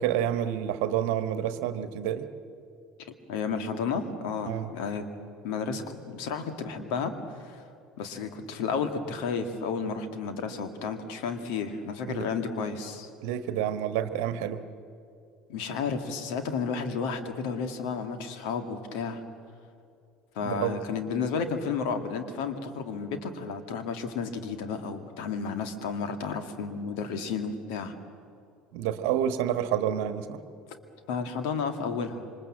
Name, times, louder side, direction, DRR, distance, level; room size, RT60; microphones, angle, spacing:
voice 1, 0.0-2.3 4.5-4.7 12.1-12.3 13.2-14.6 20.4-20.8 28.7-30.4, right 10 dB, 55° right, 11 dB, 1.3 m, -29 dB
voice 2, 3.3-5.1 5.4-7.1 7.4-7.6 8.0-13.1 15.5-19.2 20.3-27.9 31.1-32.2, left 5 dB, 60° left, 7 dB, 2.1 m, -32 dB
27.0 x 25.0 x 7.6 m, 2.5 s
figure-of-eight pair, 65°, 4 cm